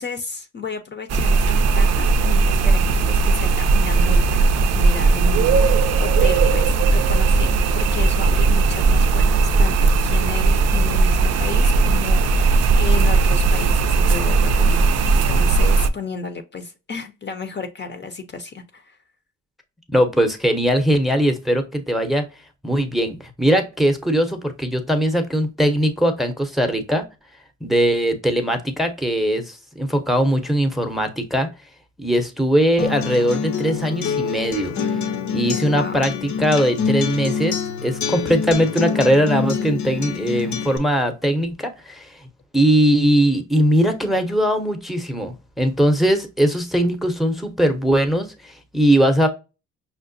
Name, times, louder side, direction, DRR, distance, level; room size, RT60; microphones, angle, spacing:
voice 1, 0.0-14.9 15.3-19.0 35.7-36.0, left 4 dB, 35° left, 0.6 m, -32 dB
sound 1, 1.1-15.9, right 4 dB, 60° right, 0.5 m, -17 dB
voice 2, 19.9-22.2 22.6-27.0 27.6-31.5 32.0-34.7 35.3-37.5 37.8-42.2 42.5-49.3, equal, ahead, 0.7 m, -20 dB
Acoustic guitar, 32.8-40.8, left 6 dB, 70° left, 0.7 m, -26 dB
5.6 x 2.1 x 2.6 m
cardioid pair, 90°, 30 cm